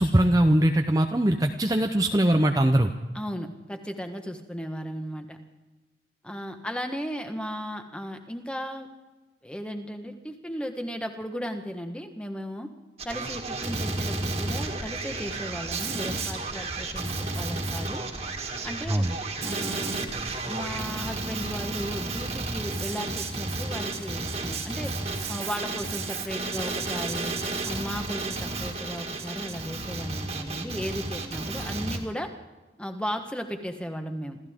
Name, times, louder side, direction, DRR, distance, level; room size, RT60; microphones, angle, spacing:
voice 1, 0.0-2.9 18.9-19.2, right 1 dB, 20° right, 4 dB, 0.7 m, -21 dB
voice 2, 3.1-5.4 6.2-8.9 9.4-12.7 13.0-18.0 18.6-19.1 19.4-20.1 20.4-24.9 25.3-27.4 27.6-32.3 32.8-34.4, equal, 5° left, 5 dB, 1.3 m, -35 dB
Male speech man speaking, 13.0-32.0, right 3 dB, 35° right, 2.0 m, -32 dB
27.0 x 14.5 x 3.7 m, 1.2 s
head